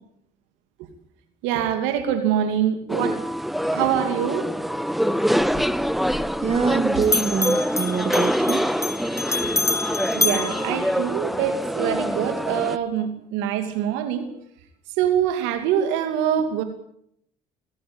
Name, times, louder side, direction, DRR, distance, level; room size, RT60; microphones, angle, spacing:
voice 1, 1.4-3.2 3.7-4.5 10.1-14.3 15.0-16.6, right 9 dB, 85° right, 8 dB, 2.7 m, -24 dB
sound 1, 2.9-12.8, equal, ahead, 1.2 m, -25 dB
Bell, 5.4-6.8 7.0-11.5, left 3 dB, 15° left, 1.5 m, -28 dB
voice 2, 6.4-8.7, right 6 dB, 35° right, 14 dB, 1.1 m, -25 dB
23.0 x 15.5 x 8.8 m, 0.70 s
supercardioid pair, 65°, 19 cm